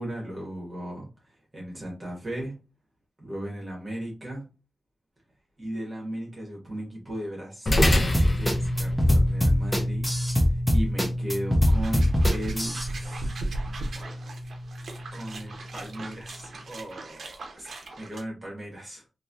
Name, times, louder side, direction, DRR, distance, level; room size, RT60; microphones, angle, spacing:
voice 1, 0.0-2.6 3.2-4.4 5.6-10.1 10.4-14.2 15.1-19.0, right 1 dB, 25° right, -3 dB, 1.3 m, -37 dB
sound 1, 7.7-16.3, left 1 dB, 35° left, 0.8 m, -29 dB
sound 2, 7.8-12.9, left 1 dB, 5° left, 0.6 m, -22 dB
sound 3, 11.6-18.2, right 2 dB, 70° right, 0.6 m, -36 dB
3.1 x 2.6 x 2.6 m, 0.31 s
wide cardioid pair, 120°, 0 cm